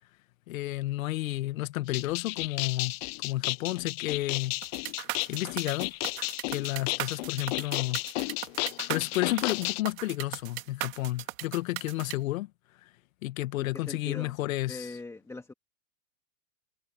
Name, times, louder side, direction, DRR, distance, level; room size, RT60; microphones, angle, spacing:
voice 1, 0.5-2.9 3.2-4.5 5.3-5.9 6.5-8.0 8.9-12.5 12.8-12.9 13.2-14.9, left 17 dB, 60° left, 1.9 m, -31 dB
sound 1, 1.9-9.8, left 24 dB, 40° left, 0.7 m, -33 dB
sound 2, 4.6-12.1, right 18 dB, 60° right, 3.5 m, -37 dB
voice 2, 13.6-14.3 14.7-15.5, left 2 dB, 5° left, 2.3 m, -41 dB
hypercardioid pair, 125°, 45 cm